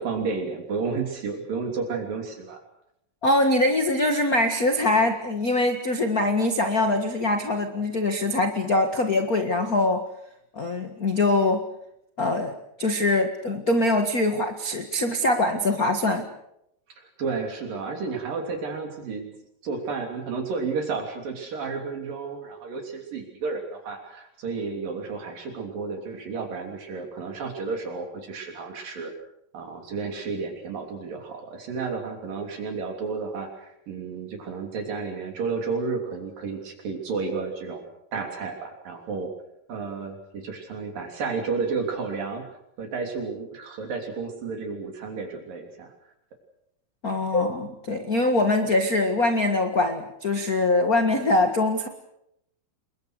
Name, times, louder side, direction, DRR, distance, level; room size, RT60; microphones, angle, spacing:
voice 1, 0.0-2.6 17.0-19.3 19.6-29.1 29.5-37.8 38.1-39.3 39.7-42.5 42.8-45.9, right 4 dB, 65° right, 3 dB, 4.8 m, -32 dB
voice 2, 3.2-10.0 10.5-11.6 12.2-12.5 12.8-16.2 47.0-51.9, left 2 dB, 40° left, 6 dB, 1.3 m, -23 dB
29.0 x 22.0 x 6.6 m, 0.79 s
omnidirectional pair, 4.3 m